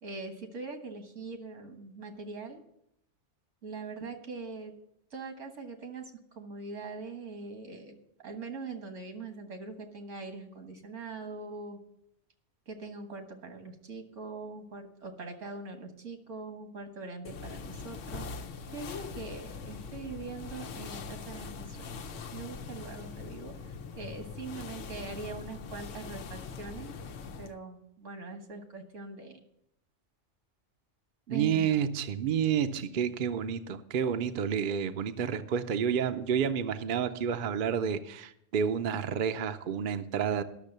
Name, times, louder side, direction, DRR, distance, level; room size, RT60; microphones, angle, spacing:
voice 1, 0.0-2.6 3.6-4.7 5.1-8.0 8.2-11.8 12.7-18.5 18.7-22.0 22.3-23.6 24.0-27.0 27.4-29.4 31.3-31.7, right 3 dB, 80° right, 5 dB, 1.8 m, -42 dB
sound 1, 17.2-27.5, left 5 dB, 85° left, 1.1 m, -42 dB
voice 2, 31.3-40.4, right 8 dB, 55° right, 9 dB, 0.7 m, -30 dB
12.0 x 6.5 x 6.6 m, 0.76 s
omnidirectional pair, 1.2 m